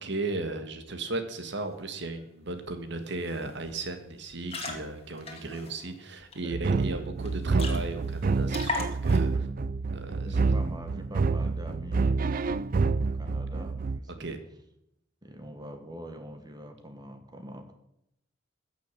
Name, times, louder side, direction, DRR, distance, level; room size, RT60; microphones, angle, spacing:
voice 1, 0.0-9.3 9.9-10.4 14.2-14.4, right 2 dB, 60° right, 8 dB, 1.6 m, -36 dB
sound 1, 2.7-2.8 3.1-3.3 3.6-3.8 4.3-6.4 6.8-6.9 7.2-7.3 7.5-8.1 8.5-9.4, left 4 dB, 30° left, 2.1 m, -37 dB
voice 2, 6.4-7.1 9.3-9.5 10.2-12.3 12.7-14.3 15.2-17.7, equal, 20° right, 7 dB, 1.4 m, -44 dB
sound 2, 6.5-14.0, right 4 dB, 45° right, 0.4 m, -27 dB
14.5 x 6.6 x 8.5 m, 0.80 s
head